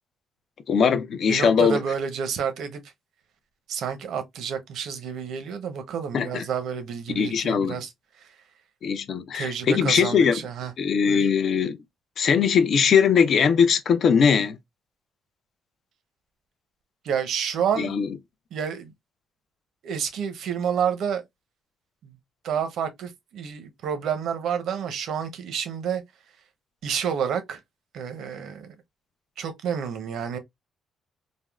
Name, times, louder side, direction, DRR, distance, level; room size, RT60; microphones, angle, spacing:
voice 1, 0.7-1.8 6.1-6.4 7.2-7.8 8.8-10.4 10.8-11.8 12.2-14.6 17.8-18.1, left 6 dB, 60° left, 0.5 m, -20 dB
voice 2, 1.3-2.8 3.7-7.9 8.2-8.3 9.3-10.7 11.1-11.3 17.0-17.9 18.5-18.9 19.8-21.2 22.0-22.2 22.4-26.0 26.8-27.6 27.9-28.7 29.4-30.4, right 7 dB, 75° right, 0.7 m, -29 dB
3.4 x 2.0 x 2.3 m
cardioid pair, 90°, 0 cm